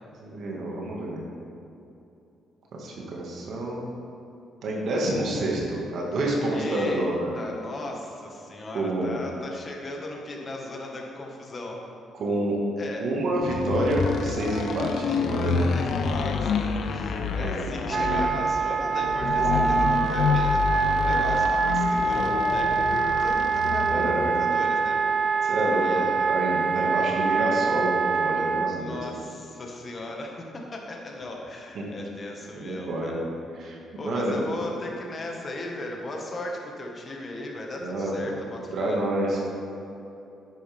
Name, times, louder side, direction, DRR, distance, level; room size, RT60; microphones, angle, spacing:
voice 1, 0.2-1.2 2.7-3.8 4.6-7.3 8.7-9.2 12.1-12.6 13.0-15.7 17.3-17.7 20.9-21.2 23.9-24.4 25.4-25.8 26.3-29.0 31.7-31.8 32.5-33.2 33.6-34.4 37.8-38.3 38.7-39.4, right 1 dB, 65° right, -3 dB, 2.1 m, -28 dB
voice 2, 6.5-7.1 7.4-11.8 12.8-13.1 15.7-25.0 25.7-26.1 28.7-33.2 34.0-39.0, left 2 dB, 40° left, 0 dB, 1.8 m, -37 dB
sound 1, 13.4-24.2, left 5 dB, 65° left, 0.8 m, -28 dB
Wind instrument woodwind instrument, 17.9-28.7, right 4 dB, 50° right, 0.7 m, -24 dB
10.5 x 9.4 x 3.7 m, 2.8 s
cardioid pair, 90°, 0 cm